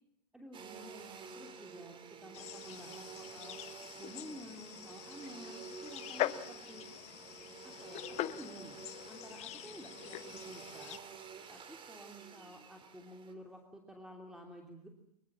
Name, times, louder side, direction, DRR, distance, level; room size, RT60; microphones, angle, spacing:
voice 1, 0.3-1.9 2.2-3.6 4.0-6.9 7.6-8.8 9.1-11.0 11.5-14.9, equal, 5° right, 1 dB, 3.0 m, -52 dB
Domestic sounds home sounds, 0.5-13.3, right 6 dB, 25° right, 3.2 m, -51 dB
sound 1, 2.3-11.0, left 15 dB, 30° left, 1.1 m, -43 dB
25.0 x 22.5 x 7.5 m, 0.74 s
figure-of-eight pair, 105°, 21 cm